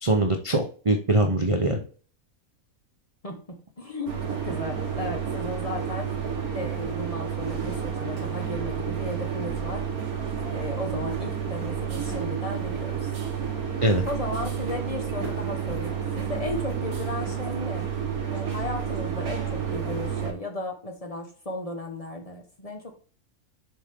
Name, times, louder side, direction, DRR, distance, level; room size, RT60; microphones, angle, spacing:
voice 1, 0.0-1.8 13.8-14.0, right 1 dB, 40° right, 4 dB, 0.4 m, -22 dB
voice 2, 3.2-6.1 6.5-9.9 10.5-13.1 13.6-13.7 14.1-17.9 18.3-22.9, left 1 dB, 25° left, 3 dB, 1.0 m, -35 dB
sound 1, 4.1-20.3, right 7 dB, 70° right, 1.8 m, -30 dB
7.1 x 4.9 x 3.6 m, 0.40 s
omnidirectional pair, 1.6 m